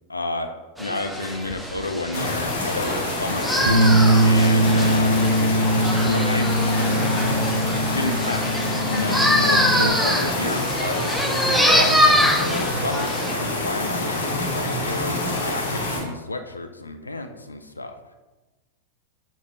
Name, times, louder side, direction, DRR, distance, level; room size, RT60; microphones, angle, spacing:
voice 1, 0.1-0.5 0.8-3.8 4.2-5.1 6.0-6.6 7.9-18.0, left 2 dB, 80° left, 6 dB, 0.3 m, -31 dB
sound 1, 0.8-13.3, equal, ahead, 0.4 m, -24 dB
sound 2, 2.1-16.0, left 2 dB, 65° left, 1.0 m, -27 dB
Bass guitar, 3.7-9.9, right 1 dB, 60° right, 0.7 m, -21 dB
6.4 x 3.0 x 2.7 m, 1.2 s
figure-of-eight pair, 90°, 0 cm